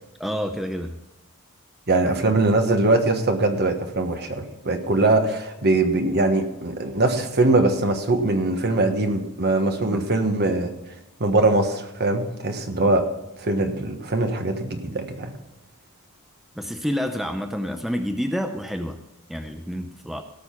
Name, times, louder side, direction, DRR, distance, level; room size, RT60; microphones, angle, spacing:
voice 1, 0.2-1.0 9.8-10.1 16.6-19.0 19.3-20.2, equal, ahead, 6 dB, 0.6 m, -28 dB
voice 2, 1.9-10.7 11.2-13.1 13.4-15.3, right 2 dB, 50° right, 6 dB, 1.4 m, -22 dB
17.5 x 6.3 x 5.9 m, 0.94 s
head